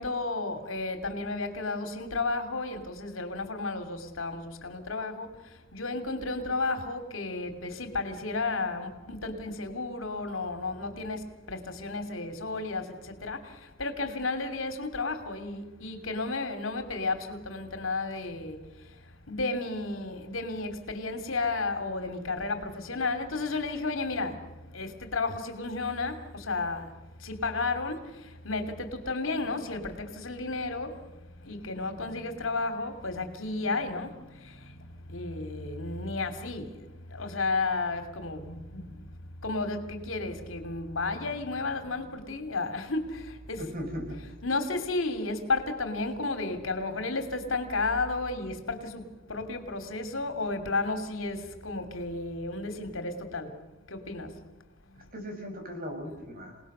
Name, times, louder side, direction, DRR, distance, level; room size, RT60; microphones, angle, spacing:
voice 1, 0.0-31.1 31.4-39.1 39.4-43.7 44.4-53.6 53.9-54.5 54.8-55.1, left 3 dB, 75° left, 2.9 m, -33 dB
voice 2, 43.6-44.2 55.1-56.6, equal, 45° right, 6.2 m, -38 dB
27.5 x 19.5 x 6.8 m
head